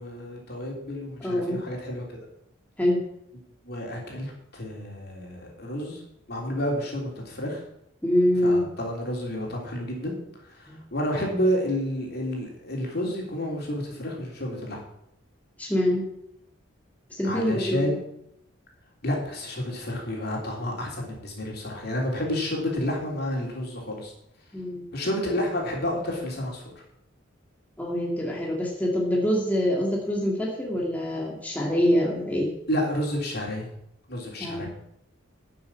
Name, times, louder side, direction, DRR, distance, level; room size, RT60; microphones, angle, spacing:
voice 1, 0.0-2.0 3.6-6.0 6.3-7.6 8.4-10.2 10.5-14.8 17.2-18.0 19.0-24.1 24.9-26.6 32.7-33.7 34.1-34.7, equal, 55° left, -1 dB, 3.5 m, -30 dB
voice 2, 1.2-1.6 2.8-3.0 8.0-8.7 10.7-10.8 15.6-16.0 17.1-17.9 24.5-24.8 27.8-32.5 34.4-34.7, left 1 dB, 10° left, -3 dB, 2.3 m, -25 dB
11.5 x 6.8 x 7.4 m, 0.77 s
head